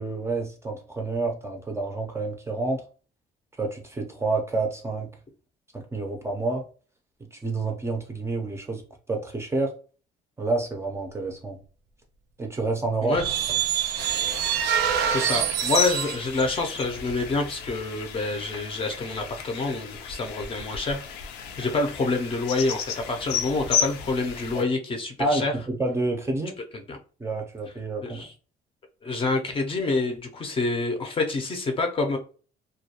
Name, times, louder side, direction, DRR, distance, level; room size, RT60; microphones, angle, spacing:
voice 1, 0.0-2.8 3.6-5.1 5.7-6.6 7.3-8.8 9.1-9.7 10.4-11.6 12.4-13.2 24.5-24.6 25.2-26.6 27.2-28.3, right 3 dB, 15° right, 0.5 m, -28 dB
voice 2, 13.0-13.3 15.1-21.0 21.6-25.5 26.7-27.0 28.0-28.3 29.0-32.2, left 3 dB, 30° left, 0.5 m, -27 dB
sound 1, 13.1-16.3, right 9 dB, 75° right, 0.4 m, -25 dB
sound 2, 14.0-24.6, left 7 dB, 80° left, 0.4 m, -33 dB
2.3 x 2.2 x 2.8 m
cardioid pair, 110°, 17 cm